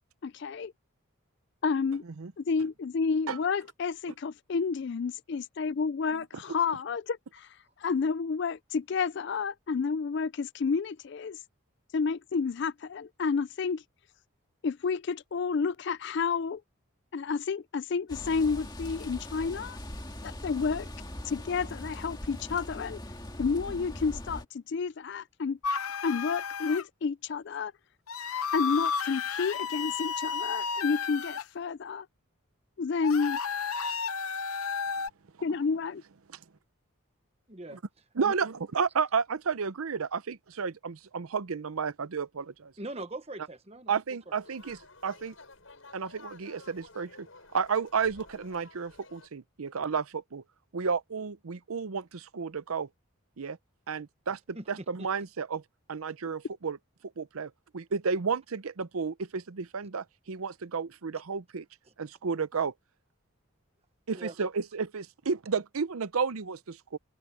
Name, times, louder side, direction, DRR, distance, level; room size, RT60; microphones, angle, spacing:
voice 1, 0.2-0.7 1.6-2.0 2.4-7.5 7.8-11.4 11.9-13.8 14.6-16.6 17.1-19.8 20.2-20.9 21.3-23.0 23.4-25.6 26.0-27.7 28.5-32.1 32.8-33.4 35.4-36.0, left 5 dB, 55° left, 0.4 m, -30 dB
sound 1, 18.1-24.4, left 1 dB, 20° left, 2.1 m, -41 dB
sound 2, 25.6-26.8 28.1-31.4 33.0-35.1, left 6 dB, 90° left, 0.8 m, -32 dB
voice 2, 37.5-37.8 38.2-38.3 42.8-44.0 44.3-44.4 54.5-54.6 55.0-55.1 64.1-64.3, right 2 dB, 30° right, 1.2 m, -41 dB
voice 3, 38.2-42.7 43.9-45.3 45.9-47.3 47.5-50.4 50.7-52.9 53.4-53.6 53.9-55.6 55.9-56.8 57.2-61.6 62.0-62.7 64.1-67.0, right 5 dB, 85° right, 0.7 m, -32 dB
sound 3, 44.3-49.3, left 3 dB, 70° left, 7.8 m, -52 dB
open air
head